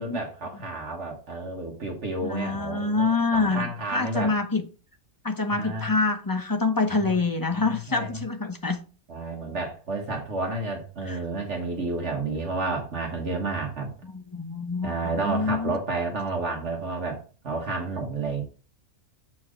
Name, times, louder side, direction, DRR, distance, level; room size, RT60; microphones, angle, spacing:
voice 1, 0.0-4.3 5.6-5.9 7.0-7.1 7.5-8.2 9.1-13.9 14.8-18.4, right 3 dB, 55° right, 1.6 m, -31 dB
voice 2, 2.2-4.6 5.2-8.8 11.1-11.2 14.0-15.8, left 3 dB, 20° left, 0.6 m, -26 dB
7.4 x 4.6 x 4.9 m
omnidirectional pair, 1.4 m